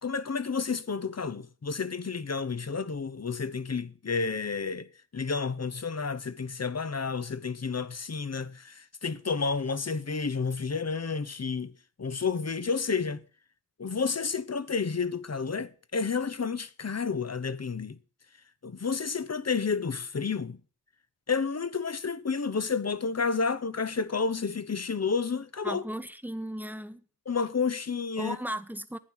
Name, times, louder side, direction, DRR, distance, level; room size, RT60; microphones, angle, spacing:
voice 1, 0.0-4.9 5.1-11.7 12.0-13.2 13.8-18.0 18.6-20.6 21.3-25.8 27.3-28.4, left 5 dB, 35° left, 1.0 m, -30 dB
voice 2, 25.6-27.0 28.2-29.0, right 1 dB, 5° right, 1.2 m, -36 dB
11.5 x 9.3 x 6.2 m
cardioid pair, 55°, 42 cm